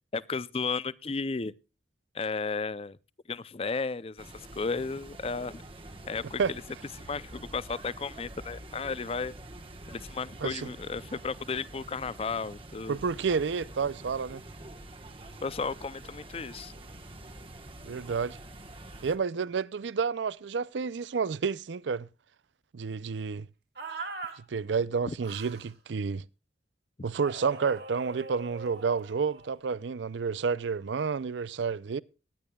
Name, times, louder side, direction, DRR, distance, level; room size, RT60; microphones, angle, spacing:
voice 1, 0.1-1.5 2.1-3.0 3.3-5.6 6.1-6.4 7.0-9.3 9.9-13.0 15.4-16.7 25.1-25.2, left 4 dB, 35° left, 0.5 m, -34 dB
sound 1, 4.2-19.2, right 1 dB, 30° right, 1.2 m, -46 dB
voice 2, 12.9-14.4 17.8-18.4 19.0-22.1 22.7-23.5 24.4-26.2 27.0-32.0, right 5 dB, 85° right, 0.5 m, -30 dB
sound 2, 23.8-24.4 25.2-25.7 27.2-29.5, right 3 dB, 60° right, 2.4 m, -42 dB
19.0 x 10.5 x 2.3 m
head